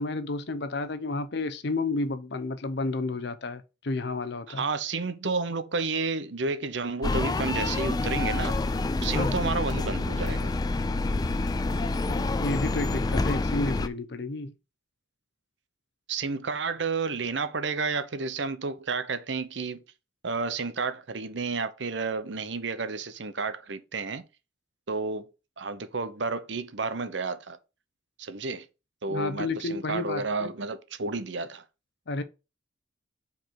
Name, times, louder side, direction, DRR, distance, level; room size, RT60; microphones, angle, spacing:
voice 1, 0.0-4.6 9.1-9.4 12.1-14.6 29.1-30.5 32.1-32.2, left 2 dB, 60° left, 0.7 m, -31 dB
voice 2, 4.5-8.6 9.0-10.5 16.1-19.8 20.2-24.2 24.9-25.3 25.6-27.6 28.2-28.7 29.0-31.6, right 4 dB, 70° right, 0.8 m, -31 dB
sound 1, 7.0-13.9, left 2 dB, 20° left, 0.4 m, -27 dB
5.2 x 4.7 x 5.8 m
head